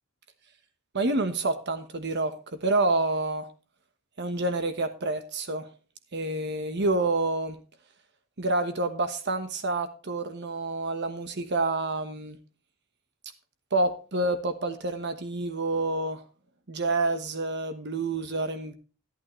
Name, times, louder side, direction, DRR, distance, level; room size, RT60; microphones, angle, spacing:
voice 1, 0.9-3.5 4.2-5.7 6.1-7.6 8.4-12.4 13.7-16.2 16.7-18.7, right 2 dB, 55° right, 1.1 m, -28 dB
11.5 x 11.5 x 3.1 m
head